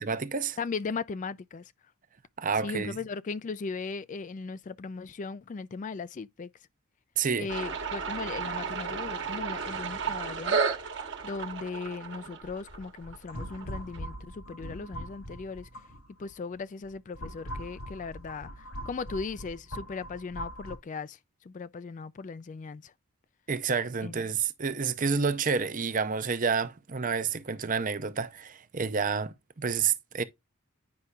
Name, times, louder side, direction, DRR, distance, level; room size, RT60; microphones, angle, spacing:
voice 1, 0.0-0.6 2.4-3.0 7.2-7.5 23.5-30.2, right 5 dB, 40° right, 0.7 m, -29 dB
voice 2, 0.6-1.7 2.6-6.5 7.4-10.6 11.2-15.7 16.2-22.9 24.0-24.2, left 4 dB, 35° left, 0.3 m, -38 dB
sound 1, 7.5-14.0, right 5 dB, 55° right, 1.2 m, -33 dB
sound 2, 12.4-16.3 16.8-20.8, equal, 90° left, 3.7 m, -41 dB
9.5 x 5.6 x 2.3 m
head